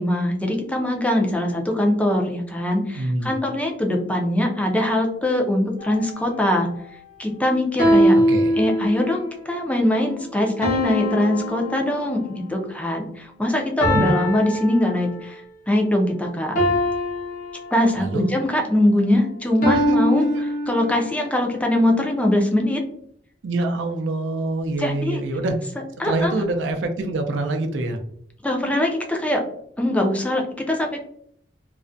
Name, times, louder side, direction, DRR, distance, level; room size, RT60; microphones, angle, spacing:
voice 1, 0.0-6.7 7.2-8.2 8.6-15.4 15.7-16.6 17.7-22.8 24.8-25.2 26.0-26.3 28.4-29.4 29.8-31.0, left 1 dB, 10° left, 1 dB, 0.4 m, -22 dB
voice 2, 2.9-3.3 8.3-8.5 13.9-14.2 18.0-18.3 19.7-19.8 23.4-25.6 26.0-28.0, right 2 dB, 80° right, 5 dB, 0.4 m, -25 dB
sound 1, 5.8-6.2 7.8-9.3 10.6-12.4 13.8-15.4 16.5-18.2 19.6-21.2, equal, 45° left, 0.6 m, -22 dB
2.4 x 2.1 x 2.5 m, 0.67 s
head